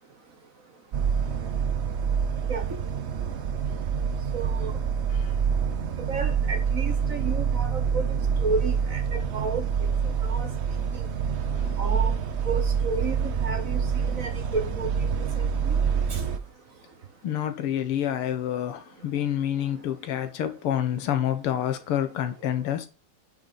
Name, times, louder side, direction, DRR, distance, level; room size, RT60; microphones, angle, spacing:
sound 1, 0.9-16.4, right 6 dB, 80° right, 0.6 m, -26 dB
voice 1, 4.3-4.8 6.1-8.0 8.4-9.6 10.0-10.5 10.9-11.0 11.8-12.1 12.4-15.1 15.4-16.3, right 4 dB, 45° right, 1.3 m, -32 dB
voice 2, 17.2-22.9, left 10 dB, 85° left, 2.1 m, -28 dB
9.0 x 6.2 x 4.2 m
omnidirectional pair, 2.4 m